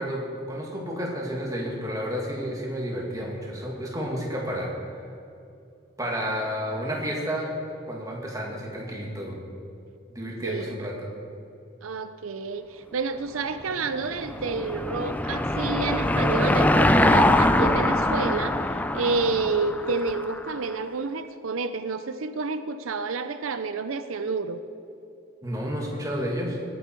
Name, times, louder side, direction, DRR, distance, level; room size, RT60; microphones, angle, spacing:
voice 1, 0.0-5.0 6.0-7.5 7.9-9.4 10.1-11.1 25.4-26.6, equal, 15° right, -1 dB, 2.0 m, -31 dB
voice 2, 10.4-10.7 11.8-24.6, right 4 dB, 90° right, 10 dB, 0.6 m, -29 dB
Car passing by / Engine, 13.7-20.5, left 1 dB, 10° left, 0.4 m, -23 dB
19.5 x 9.0 x 4.5 m, 2.6 s
head